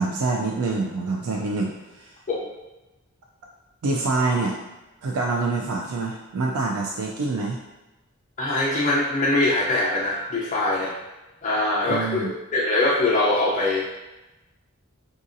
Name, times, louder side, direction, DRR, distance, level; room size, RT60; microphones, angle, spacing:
voice 1, 0.0-2.2 3.8-4.6 5.0-7.6 11.9-12.3, right 3 dB, 85° right, 1 dB, 0.4 m, -26 dB
voice 2, 8.4-10.9 11.4-13.9, left 2 dB, 35° left, -6 dB, 0.5 m, -23 dB
4.9 x 2.6 x 2.5 m, 1.0 s
head